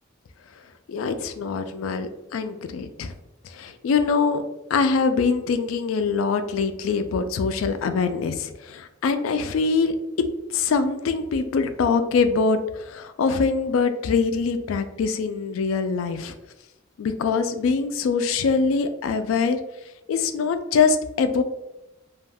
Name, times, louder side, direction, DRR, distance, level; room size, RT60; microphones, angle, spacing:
voice 1, 0.9-3.1 3.6-4.4 4.7-9.9 10.5-16.3 17.0-19.6 20.1-21.4, left 5 dB, 85° left, 9 dB, 0.3 m, -23 dB
2.4 x 2.2 x 3.3 m, 0.94 s
head